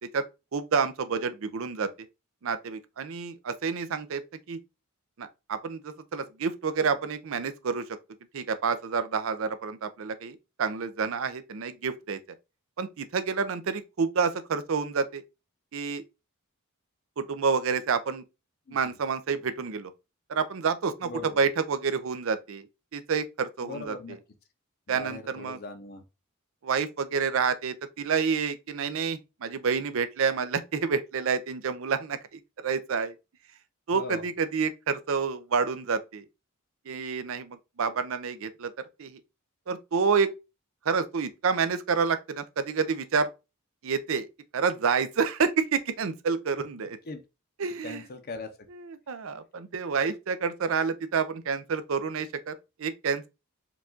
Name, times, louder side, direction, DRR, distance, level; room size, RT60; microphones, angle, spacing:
voice 1, 0.5-1.9 2.4-4.2 4.5-4.6 5.2-7.8 8.3-12.2 12.8-15.2 15.7-16.0 17.2-18.2 18.7-19.9 20.3-22.7 22.9-24.2 24.9-25.6 26.6-33.1 33.9-36.2 36.9-38.7 39.0-39.2 39.7-40.3 40.9-43.3 43.8-44.3 44.5-47.0 47.6-48.0 48.7-53.3, right 5 dB, 65° right, 0.5 m, -29 dB
voice 2, 21.0-21.4 23.6-24.2 24.9-26.0 33.9-34.2 47.0-47.2 47.8-48.7, left 3 dB, 45° left, 0.6 m, -39 dB
4.6 x 2.4 x 3.8 m
head